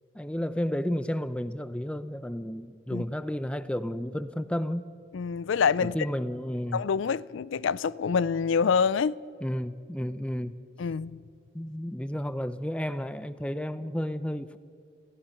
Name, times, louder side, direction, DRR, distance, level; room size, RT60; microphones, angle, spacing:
voice 1, 0.1-4.8 5.8-6.8 9.4-10.6 11.5-14.6, equal, 5° left, 0.5 m, -32 dB
voice 2, 5.1-5.9 6.7-9.1 10.8-11.2, left 6 dB, 75° left, 0.4 m, -26 dB
28.0 x 16.0 x 5.9 m
head